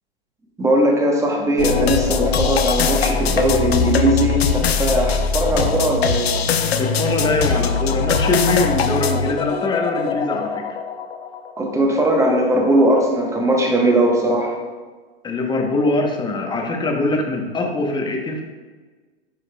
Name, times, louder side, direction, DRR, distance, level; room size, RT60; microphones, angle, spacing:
voice 1, 0.6-6.3 11.6-14.6, right 1 dB, 10° right, 0 dB, 1.1 m, -19 dB
sound 1, 1.6-11.7, left 5 dB, 85° left, 0.6 m, -21 dB
voice 2, 6.7-10.7 15.2-18.4, left 2 dB, 15° left, 2 dB, 0.9 m, -22 dB
10.0 x 4.8 x 2.3 m, 1.4 s
hypercardioid pair, 115°, 30 cm